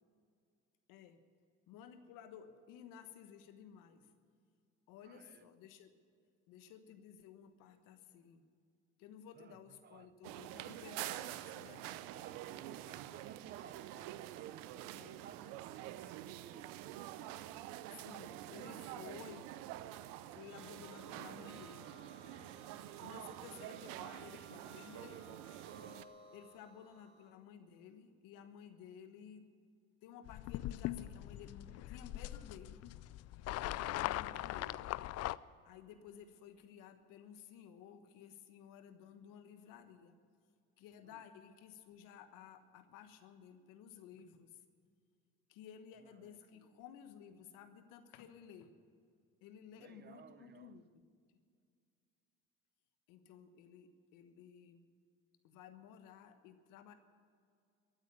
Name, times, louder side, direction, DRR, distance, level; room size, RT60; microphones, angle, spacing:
voice 1, 0.9-1.2 1.7-4.1 4.9-5.9 6.5-8.4 9.0-11.9 14.9-15.2 17.9-19.6 20.3-21.9 23.0-25.4 26.3-29.5 30.0-32.8 34.0-34.8 35.6-40.2 40.8-44.6 45.5-48.7 49.4-51.0 53.1-54.9 55.4-56.9, left 8 dB, 75° left, 1.3 m, -55 dB
voice 2, 5.0-5.5 9.4-10.1 12.1-17.4 34.3-34.9 41.1-41.2 46.0-46.7 49.7-50.8, right 7 dB, 30° right, 0.7 m, -58 dB
sound 1, 10.2-26.0, right 14 dB, 80° right, 0.7 m, -47 dB
sound 2, 20.4-27.3, right 1 dB, 60° right, 4.2 m, -59 dB
sound 3, 30.3-35.4, left 15 dB, 50° left, 0.4 m, -41 dB
14.0 x 8.9 x 9.7 m
supercardioid pair, 90°, 33 cm